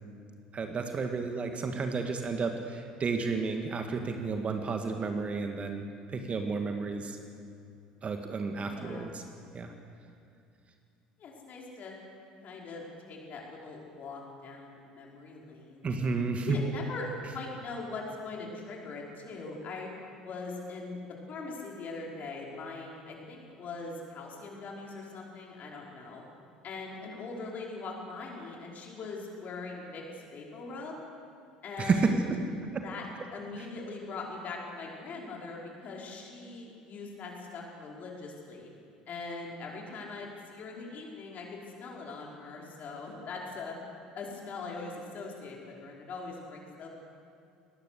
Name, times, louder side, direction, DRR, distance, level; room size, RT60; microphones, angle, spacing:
voice 1, 0.5-5.9 6.1-7.2 8.0-9.2 9.5-9.7 15.8-16.6 31.8-32.4 32.7-32.8 33.6-33.7, right 4 dB, 30° right, 5 dB, 1.8 m, -31 dB
voice 2, 8.6-9.1 11.2-11.9 12.4-16.1 16.5-17.1 17.3-19.9 20.2-26.2 26.6-30.0 30.3-30.9 31.6-32.3 32.8-33.0 33.3-38.7 39.1-43.8 44.1-46.9, left 3 dB, 40° left, -2 dB, 5.2 m, -41 dB
23.5 x 19.5 x 6.8 m, 2.5 s
figure-of-eight pair, 65°, 4 cm